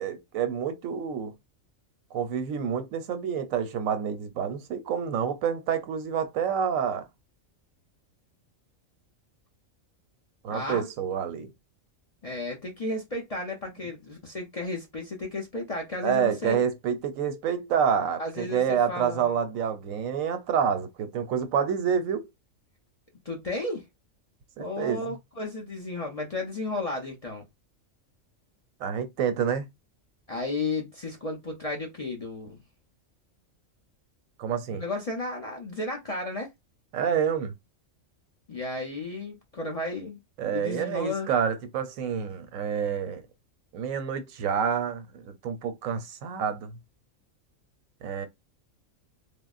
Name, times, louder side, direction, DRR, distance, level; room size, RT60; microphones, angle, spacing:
voice 1, 0.0-1.3 2.1-7.1 10.4-11.5 16.0-22.3 24.6-25.1 28.8-29.7 34.4-34.8 36.9-37.5 40.4-43.2 43.7-46.8 48.0-48.3, right 7 dB, 85° right, 1.0 m, -28 dB
voice 2, 10.5-10.9 12.2-16.6 18.2-19.3 23.2-23.8 24.6-27.5 30.3-32.6 34.7-36.5 38.5-40.2 40.5-41.3, left 2 dB, 40° left, 0.5 m, -33 dB
3.5 x 2.0 x 2.3 m
omnidirectional pair, 1.4 m